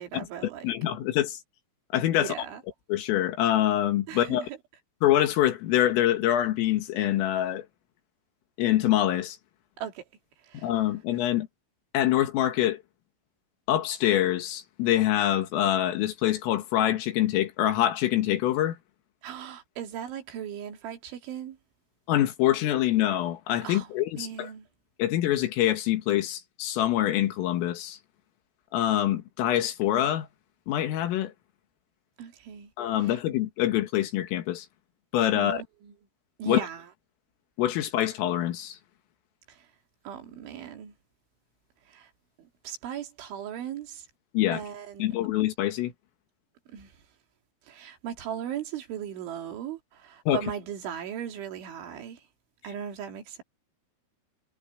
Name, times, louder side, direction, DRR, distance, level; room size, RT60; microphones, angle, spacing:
voice 1, 0.0-0.7 2.2-2.6 4.1-4.6 9.8-10.1 10.4-10.7 19.2-21.6 23.6-23.9 24.2-24.7 32.2-32.7 33.0-33.2 35.3-35.9 36.4-36.9 39.5-39.7 40.0-40.9 41.9-42.1 42.4-44.1 44.5-45.1 46.7-47.0 47.6-52.3 52.6-53.4, right 9 dB, 70° right, 5.0 m, -38 dB
voice 2, 0.6-1.4 1.9-2.3 2.9-4.5 5.0-7.7 8.6-9.4 10.6-11.5 11.9-12.8 13.7-18.8 22.1-24.5 25.0-28.0 28.7-30.3 30.7-31.3 32.8-34.7 35.1-35.6 36.5-36.6 37.6-38.8 44.3-44.6 45.0-45.9 50.3-50.4, left 13 dB, 90° left, 4.7 m, -25 dB
omnidirectional pair, 5.7 m